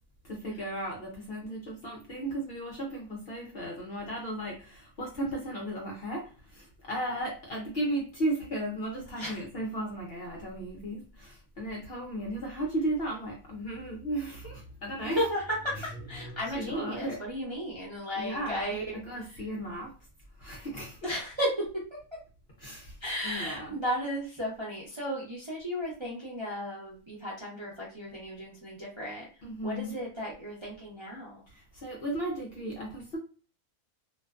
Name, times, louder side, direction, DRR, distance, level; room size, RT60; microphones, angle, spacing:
voice 1, 0.2-15.3 15.7-17.2 18.2-19.9 20.4-21.2 22.6-23.0 23.2-23.8 29.4-30.0 31.5-33.2, right 1 dB, 60° left, 0.7 m, -35 dB
voice 2, 15.0-18.9 19.3-19.4 21.0-22.0 23.0-29.2 29.6-31.4, equal, 35° right, 0.4 m, -34 dB
2.5 x 2.1 x 2.3 m
omnidirectional pair, 1.5 m